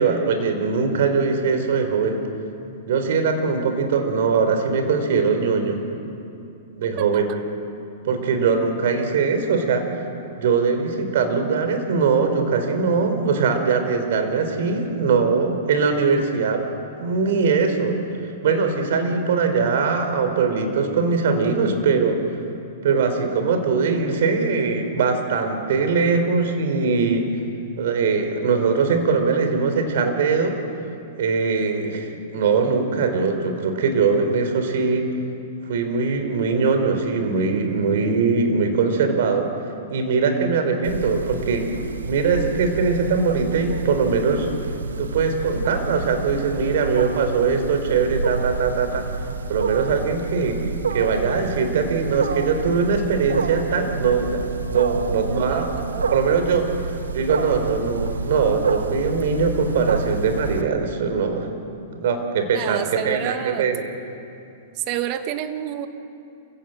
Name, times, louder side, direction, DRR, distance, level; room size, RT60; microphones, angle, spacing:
voice 1, 0.0-2.2 2.9-5.8 6.8-7.3 8.1-9.9 10.4-16.6 17.0-18.0 18.4-22.2 22.8-27.3 27.8-30.6 31.2-35.1 35.7-39.5 39.9-41.7 42.0-44.5 45.0-49.1 49.5-50.6 50.9-56.7 57.1-61.5 61.9-63.9, right 5 dB, 65° right, 6 dB, 4.0 m, -21 dB
Wild animals, 40.8-60.6, right 4 dB, 85° right, 1.5 m, -29 dB
voice 2, 55.3-56.1 62.5-63.7 64.8-65.9, right 11 dB, 45° right, 8 dB, 1.8 m, -29 dB
28.0 x 16.5 x 7.8 m, 2.6 s
hypercardioid pair, 110°, 0 cm